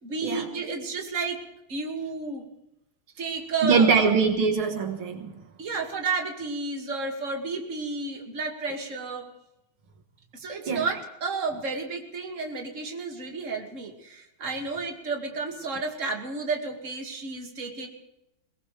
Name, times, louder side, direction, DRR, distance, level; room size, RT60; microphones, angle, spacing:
voice 1, 0.0-1.4 1.7-2.4 3.2-4.1 5.6-9.3 10.3-17.9, right 4 dB, 35° right, 2 dB, 2.5 m, -32 dB
voice 2, 3.6-5.3 10.7-10.8, right 5 dB, 80° right, 5 dB, 2.3 m, -22 dB
23.0 x 18.5 x 3.4 m, 0.89 s
omnidirectional pair, 2.3 m